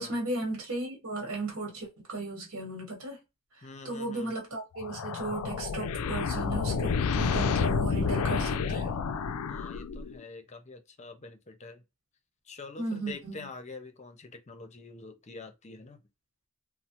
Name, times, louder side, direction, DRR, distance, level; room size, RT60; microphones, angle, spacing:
voice 1, 0.0-3.2 3.8-8.9 12.8-13.5, right 2 dB, 70° right, 1.2 m, -35 dB
voice 2, 3.6-4.3 9.5-11.8 12.5-16.0, left 3 dB, 30° left, 0.6 m, -46 dB
sound 1, 4.8-10.2, left 5 dB, 75° left, 0.4 m, -30 dB
3.1 x 2.0 x 2.9 m
head